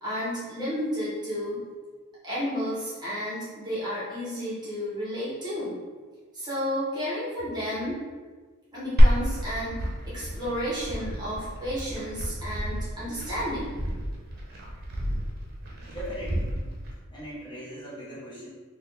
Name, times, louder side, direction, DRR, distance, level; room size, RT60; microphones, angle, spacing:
voice 1, 0.0-1.6 2.2-5.8 6.3-8.0 8.7-13.8, equal, 20° right, -9 dB, 0.9 m, -32 dB
Glass, 9.0-16.9, equal, 45° right, 0.7 m, -27 dB
voice 2, 15.8-16.6 17.1-18.5, equal, 20° left, -8 dB, 1.1 m, -39 dB
4.0 x 2.2 x 3.3 m, 1.4 s
head